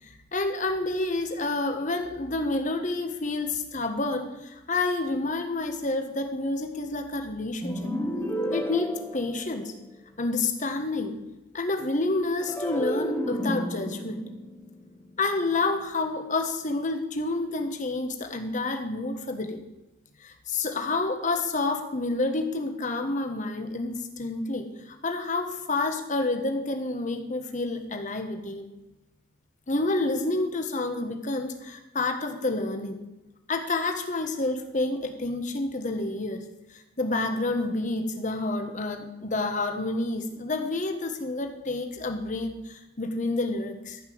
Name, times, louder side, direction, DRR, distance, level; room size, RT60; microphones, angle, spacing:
voice 1, 0.1-7.9 8.5-9.7 10.2-11.2 11.5-14.2 15.2-19.6 20.2-28.7 29.7-33.0 33.5-36.4 36.7-44.0, left 2 dB, 35° left, 6 dB, 1.3 m, -29 dB
sound 1, 7.6-10.0 12.4-15.7, equal, 10° left, 1.2 m, -32 dB
13.5 x 5.6 x 7.9 m, 0.99 s
head